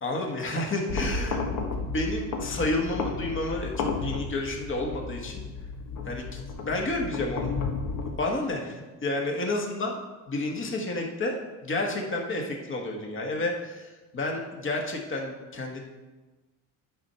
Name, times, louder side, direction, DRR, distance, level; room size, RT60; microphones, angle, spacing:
voice 1, 0.0-1.4 1.8-5.4 6.0-7.5 8.1-10.0 10.3-11.4 11.6-15.8, left 2 dB, 35° left, 1 dB, 1.5 m, -30 dB
sound 1, 0.9-8.1, left 4 dB, 60° left, 1.3 m, -33 dB
10.0 x 4.4 x 5.6 m, 1.2 s
cardioid pair, 130°, 36 cm